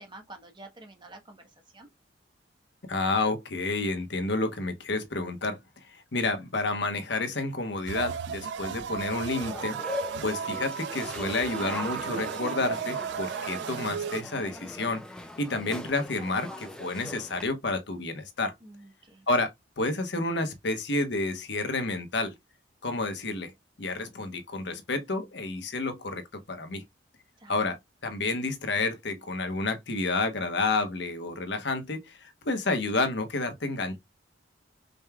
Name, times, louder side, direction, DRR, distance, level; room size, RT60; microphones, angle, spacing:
voice 1, 0.0-1.9 18.6-19.2 27.4-27.5, right 2 dB, 25° right, 1.1 m, -49 dB
voice 2, 2.9-5.6 5.8-9.8 10.2-18.5 19.3-22.3 22.8-23.5 23.8-26.8 27.5-27.8 28.0-34.0, left 2 dB, 65° left, 1.1 m, -30 dB
sound 1, 7.9-14.2, right 7 dB, 65° right, 0.3 m, -34 dB
sound 2, 9.1-17.5, left 1 dB, 5° left, 0.6 m, -41 dB
5.2 x 3.5 x 2.3 m
head